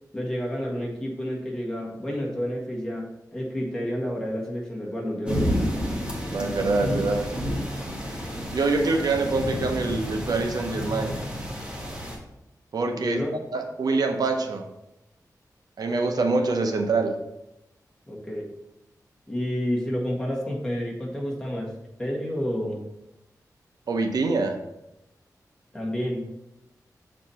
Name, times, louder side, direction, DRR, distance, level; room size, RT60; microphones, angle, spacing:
voice 1, 0.1-5.5 13.0-13.3 18.1-18.5 19.3-22.8 25.7-26.2, equal, 10° left, -4 dB, 1.7 m, -30 dB
sound 1, 5.3-12.2, equal, 15° right, 1.5 m, -30 dB
voice 2, 6.3-7.2 8.5-11.2 12.7-13.2 13.5-14.6 15.8-17.2 23.9-24.6, right 3 dB, 75° right, 5 dB, 0.7 m, -25 dB
7.3 x 4.3 x 4.2 m, 0.89 s
wide cardioid pair, 140°, 7 cm